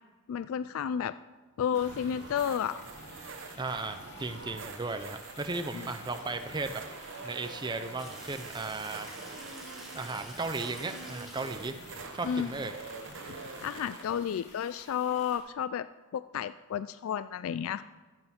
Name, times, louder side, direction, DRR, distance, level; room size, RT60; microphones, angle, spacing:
voice 1, 0.3-1.1 1.6-2.8 5.7-5.9 12.2-12.5 13.3-15.9 16.1-17.8, left 8 dB, 65° left, 14 dB, 0.3 m, -32 dB
sound 1, 1.7-15.4, left 3 dB, 50° left, 2.5 m, -52 dB
sound 2, 1.8-14.0, right 4 dB, 55° right, 0.9 m, -45 dB
voice 2, 3.6-6.8 7.2-9.1 9.9-11.8 12.1-12.7, right 3 dB, 20° right, 7 dB, 0.5 m, -36 dB
Water tap faucet / Sink (filling or washing), 8.0-13.4, equal, ahead, 2.3 m, -50 dB
14.0 x 7.9 x 5.8 m, 1.3 s
head